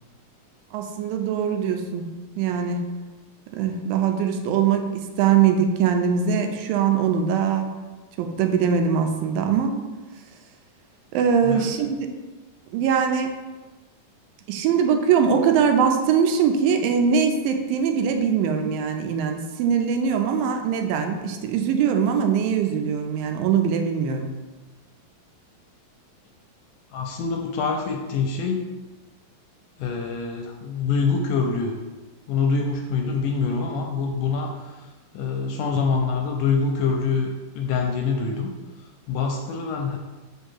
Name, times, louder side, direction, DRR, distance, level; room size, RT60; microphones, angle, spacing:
voice 1, 0.7-2.1 2.4-2.8 3.5-7.7 8.2-9.8 11.1-12.0 12.7-13.3 14.5-24.3, right 7 dB, 90° right, 5 dB, 2.3 m, -22 dB
voice 2, 26.9-28.7 29.8-31.7 32.3-37.3 37.6-38.5 38.8-40.0, left 5 dB, 80° left, 2 dB, 1.9 m, -25 dB
5.2 x 3.5 x 5.6 m, 1.2 s
omnidirectional pair, 4.0 m